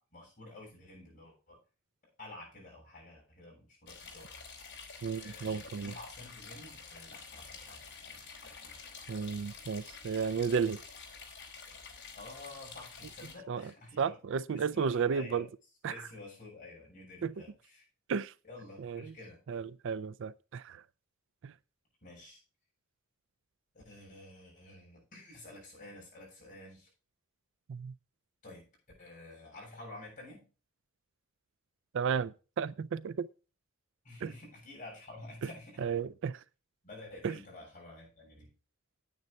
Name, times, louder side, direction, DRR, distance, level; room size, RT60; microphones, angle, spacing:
voice 1, 0.1-1.6 2.2-4.3 5.2-8.8 12.2-14.2 14.5-15.5 15.9-17.9 18.4-19.4 22.0-22.4 23.7-26.9 28.4-28.7 29.0-30.4 34.0-35.8 36.8-38.5, left 2 dB, 40° left, 7.6 m, -50 dB
sound 1, 3.9-13.3, left 5 dB, 55° left, 3.3 m, -49 dB
voice 2, 5.0-5.9 9.1-10.8 13.5-13.7 14.0-15.4 15.8-15.9 17.2-17.3 18.1-18.3 18.8-19.1 19.5-20.8 21.4-21.5 27.7-27.9 31.9-33.3 34.2-34.3 35.8-36.4 37.2-37.4, right 6 dB, 60° right, 0.4 m, -33 dB
9.4 x 9.4 x 4.4 m
head